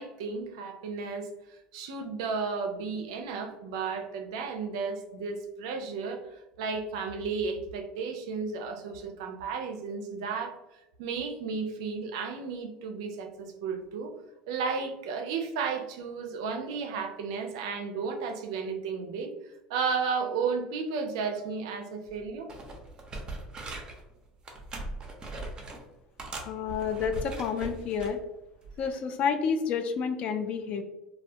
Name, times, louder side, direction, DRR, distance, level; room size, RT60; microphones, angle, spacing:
voice 1, 0.0-6.2 6.6-10.6 11.0-14.1 14.5-19.3 19.7-22.5, right 5 dB, 75° right, 5 dB, 0.4 m, -33 dB
sound 1, 22.1-22.2 22.5-24.0 24.4-25.8 26.2-28.1 28.6-28.9, right 2 dB, 30° right, 0.6 m, -40 dB
voice 2, 26.5-28.2 28.8-30.8, left 6 dB, 50° left, 7 dB, 0.4 m, -29 dB
2.2 x 2.1 x 2.6 m, 0.95 s
hypercardioid pair, 85°, 3 cm